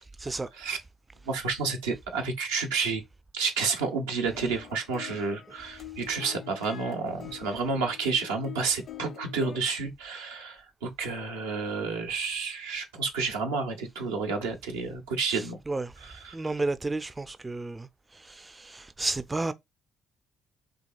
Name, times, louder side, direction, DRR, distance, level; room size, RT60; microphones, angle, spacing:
voice 1, 0.2-0.5 15.3-15.9 16.3-19.5, right 2 dB, 20° right, 0.4 m, -32 dB
voice 2, 1.3-3.0 3.3-15.6 16.0-16.3, right 4 dB, 85° right, 0.9 m, -30 dB
sound 1, 4.3-9.6, left 12 dB, 60° left, 0.7 m, -46 dB
5.1 x 2.8 x 2.3 m
hypercardioid pair, 50°, 0 cm